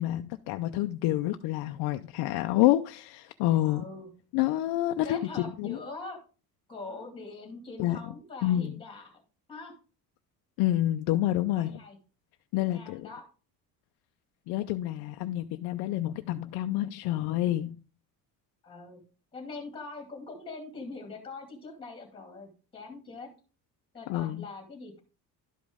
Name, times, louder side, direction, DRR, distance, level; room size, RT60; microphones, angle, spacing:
voice 1, 0.0-3.8 4.3-5.2 5.6-5.8 7.8-8.0 8.4-8.7 10.6-11.8 12.5-13.1 14.5-17.8 24.1-24.4, left 14 dB, 80° left, 0.6 m, -28 dB
voice 2, 3.7-4.1 5.0-6.2 6.7-9.2 9.5-9.7 11.5-12.0 12.6-13.2 18.6-19.0 19.3-23.3 23.9-25.0, left 3 dB, 15° left, 2.3 m, -43 dB
11.5 x 5.1 x 3.5 m
cardioid pair, 175°, 38 cm